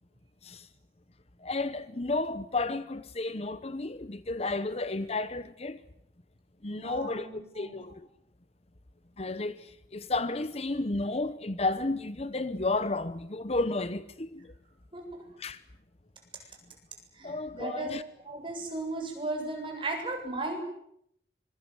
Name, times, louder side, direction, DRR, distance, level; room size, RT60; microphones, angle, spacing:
voice 1, 1.4-5.8 6.6-8.1 9.2-14.4 15.4-15.6 17.2-18.0, left 2 dB, 35° left, 1.0 m, -32 dB
voice 2, 6.7-7.9 14.9-15.0 17.1-18.0 18.2-20.6, right 2 dB, 30° right, 7.5 m, -36 dB
25.5 x 23.0 x 8.2 m
head